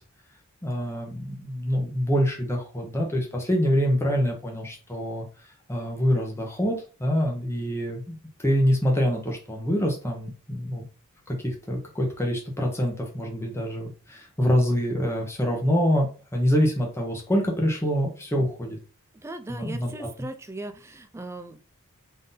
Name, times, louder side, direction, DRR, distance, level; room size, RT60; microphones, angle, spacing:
voice 1, 0.6-5.2 5.7-10.8 11.3-18.8 19.5-20.1, equal, 10° left, 0 dB, 0.8 m, -25 dB
voice 2, 19.1-21.6, right 2 dB, 10° right, 8 dB, 0.4 m, -38 dB
3.8 x 2.7 x 3.9 m, 0.35 s
head